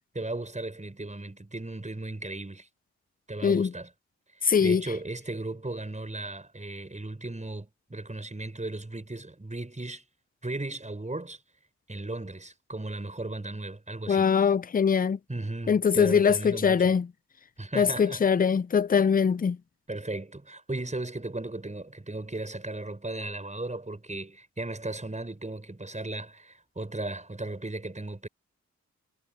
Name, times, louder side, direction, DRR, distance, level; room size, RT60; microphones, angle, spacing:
voice 1, 0.2-2.7 3.3-3.9 4.6-10.0 10.4-11.4 11.9-14.3 15.3-16.9 17.6-18.2 19.9-28.3, right 2 dB, 20° right, 7.2 m, -36 dB
voice 2, 3.4-3.7 4.4-4.8 14.1-15.2 15.7-17.1 17.7-19.6, left 6 dB, 30° left, 0.5 m, -22 dB
supercardioid pair, 45°, 32 cm